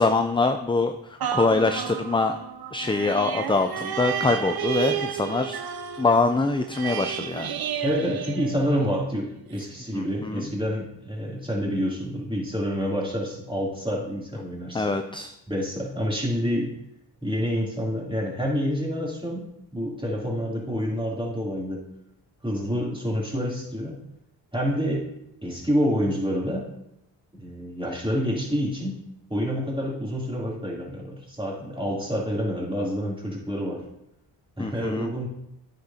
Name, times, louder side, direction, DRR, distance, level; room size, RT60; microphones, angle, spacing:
voice 1, 0.0-2.4 2.7-5.6 6.0-7.5 9.9-10.4 14.7-15.3 34.6-35.1, left 3 dB, 10° left, 7 dB, 0.5 m, -24 dB
sound 1, 1.2-9.0 9.6-9.7, right 9 dB, 55° right, 0.7 m, -32 dB
voice 2, 7.8-14.9 15.5-16.7 17.2-21.8 22.4-24.1 24.5-25.1 25.4-26.7 27.3-33.8 34.6-35.3, equal, 10° right, -4 dB, 3.2 m, -28 dB
9.5 x 6.8 x 2.9 m, 0.82 s
cardioid pair, 55°, 45 cm